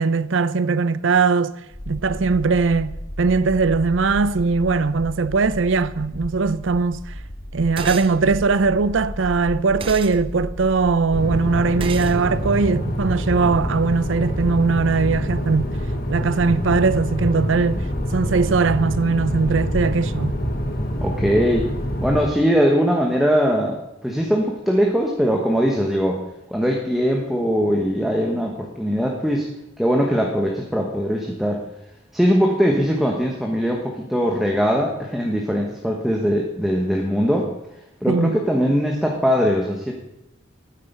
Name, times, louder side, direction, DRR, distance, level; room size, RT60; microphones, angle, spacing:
voice 1, 0.0-1.6 1.9-7.1 7.5-15.7 16.1-17.8 18.1-20.4 38.1-38.4, right 4 dB, 80° right, 0.6 m, -20 dB
sound 1, 1.7-11.9, equal, 75° left, 2.7 m, -34 dB
sound 2, 7.8-8.1 9.8-10.2 11.8-12.2, right 6 dB, 25° right, 0.5 m, -32 dB
sound 3, 11.1-22.3, equal, 50° left, 1.5 m, -26 dB
voice 2, 21.0-21.7 22.0-26.2 26.5-29.5 29.8-31.6 32.1-37.5 38.0-39.9, equal, ahead, 1.2 m, -21 dB
12.5 x 9.7 x 5.4 m
head